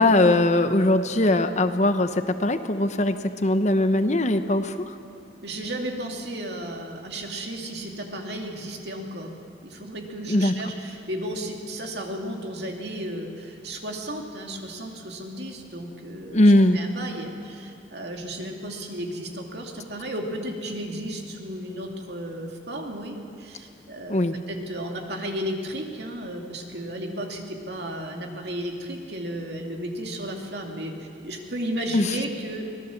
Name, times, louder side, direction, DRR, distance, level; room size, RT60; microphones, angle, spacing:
voice 1, 0.0-4.9 10.3-10.5 16.3-16.8 24.1-24.4 31.9-32.1, left 1 dB, 40° left, 9 dB, 0.9 m, -20 dB
voice 2, 5.4-9.3 9.6-30.9 31.2-32.7, right 1 dB, 65° right, 1 dB, 2.7 m, -34 dB
24.5 x 18.0 x 7.2 m, 2.4 s
head